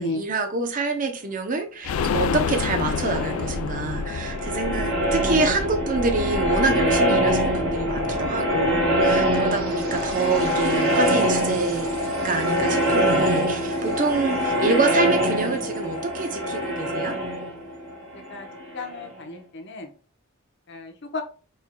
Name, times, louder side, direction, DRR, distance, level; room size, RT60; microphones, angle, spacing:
voice 1, 0.0-11.9 12.2-17.1, right 3 dB, 40° right, 0.7 m, -26 dB
sound 1, 1.8-7.5 7.8-7.9 8.2-8.3, left 6 dB, 80° left, 0.4 m, -29 dB
sound 2, 2.5-19.1, equal, 75° right, 1.8 m, -24 dB
voice 2, 18.7-19.9 20.7-21.2, left 2 dB, 55° left, 0.8 m, -32 dB
5.4 x 3.4 x 2.2 m
head